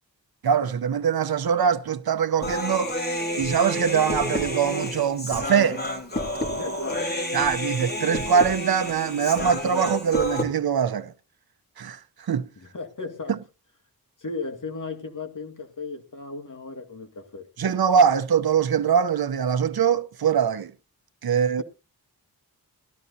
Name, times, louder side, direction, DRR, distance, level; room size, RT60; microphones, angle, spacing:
voice 1, 0.4-2.9 3.4-5.8 7.3-11.1 11.8-12.4 13.3-13.4 17.6-20.7 21.2-21.6, right 7 dB, 70° right, 0.8 m, -23 dB
Human voice, 2.4-10.4, left 1 dB, 25° left, 3.9 m, -29 dB
voice 2, 6.5-7.2 12.7-13.4 14.2-17.8 21.3-21.6, left 3 dB, 55° left, 2.2 m, -36 dB
18.0 x 13.5 x 2.7 m
wide cardioid pair, 75°, 38 cm